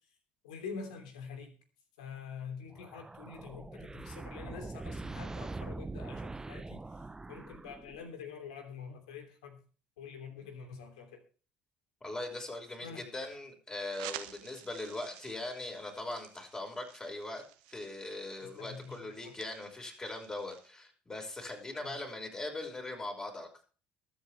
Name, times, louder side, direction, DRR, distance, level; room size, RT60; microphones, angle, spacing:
voice 1, 0.4-1.6 2.0-6.8 7.3-9.6 10.0-11.1 12.8-13.1 18.4-19.4 21.8-22.0, left 6 dB, 70° left, 5 dB, 3.1 m, -46 dB
sound 1, 2.7-8.2, right 3 dB, 15° right, 0.8 m, -43 dB
voice 2, 12.0-17.4 17.7-23.6, left 2 dB, 20° left, 2 dB, 5.3 m, -40 dB
sound 2, 13.9-20.7, right 14 dB, 65° right, 1.2 m, -51 dB
22.5 x 8.2 x 3.4 m, 0.38 s
figure-of-eight pair, 55°, 4 cm